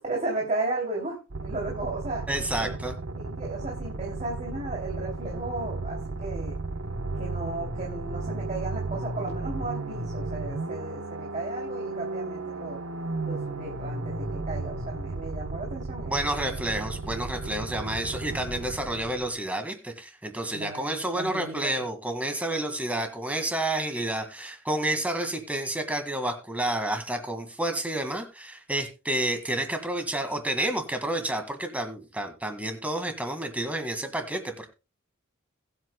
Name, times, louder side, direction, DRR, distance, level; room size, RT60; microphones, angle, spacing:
voice 1, 0.1-2.2 2.5-2.7 3.1-6.6 7.1-12.8 13.2-16.5 20.5-21.8, right 2 dB, 35° right, -1 dB, 2.9 m, -35 dB
sound 1, 1.3-19.4, right 3 dB, 65° right, 1.0 m, -34 dB
voice 2, 2.3-2.9 16.0-34.7, right 1 dB, 5° right, 6 dB, 1.8 m, -30 dB
22.0 x 8.1 x 2.2 m, 0.29 s
head